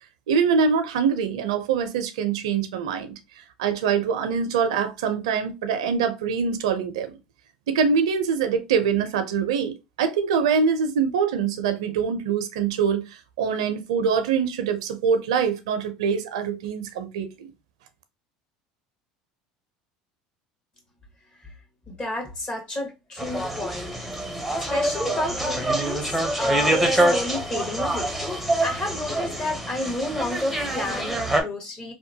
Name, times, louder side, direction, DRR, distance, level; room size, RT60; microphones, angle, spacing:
voice 1, 0.3-3.2 3.6-7.1 7.7-17.5, right 6 dB, 85° right, 0.5 m, -24 dB
voice 2, 21.9-24.1 24.6-28.1 28.6-31.9, left 1 dB, 30° left, 1.4 m, -31 dB
sound 1, 23.2-31.4, right 1 dB, ahead, 0.7 m, -25 dB
2.8 x 2.2 x 2.7 m
supercardioid pair, 90°, 3 cm